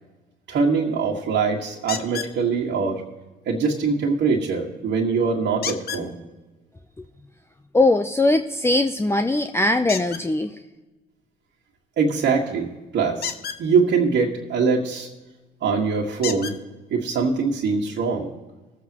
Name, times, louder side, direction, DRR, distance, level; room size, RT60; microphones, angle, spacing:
voice 1, 0.5-3.0 3.5-6.1 12.0-13.3 13.6-15.1 15.6-16.6 16.9-18.3, right 5 dB, 60° right, -3 dB, 1.7 m, -23 dB
sound 1, 1.9-2.3 5.6-6.1 9.9-10.2 13.1-13.6 15.3-15.4 16.2-16.6 17.6-17.7 18.2-18.3, left 8 dB, 50° left, 0.9 m, -30 dB
voice 2, 7.7-10.6, left 2 dB, 10° left, 7 dB, 0.6 m, -20 dB
20.5 x 8.0 x 3.0 m, 1.2 s
hypercardioid pair, 65°, 21 cm